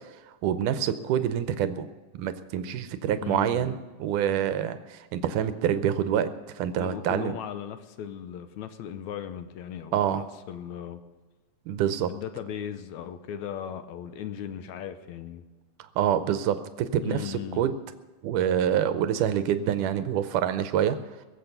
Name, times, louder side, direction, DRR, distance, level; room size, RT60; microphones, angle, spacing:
voice 1, 0.4-1.9 2.2-7.4 9.9-10.2 11.7-12.1 15.8-17.7 18.2-21.0, right 10 dB, 85° right, 11 dB, 2.3 m, -26 dB
voice 2, 3.2-3.7 6.8-11.0 12.1-15.4 17.0-17.7, left 9 dB, 75° left, 10 dB, 2.0 m, -37 dB
22.0 x 7.7 x 6.7 m, 1.2 s
omnidirectional pair, 3.6 m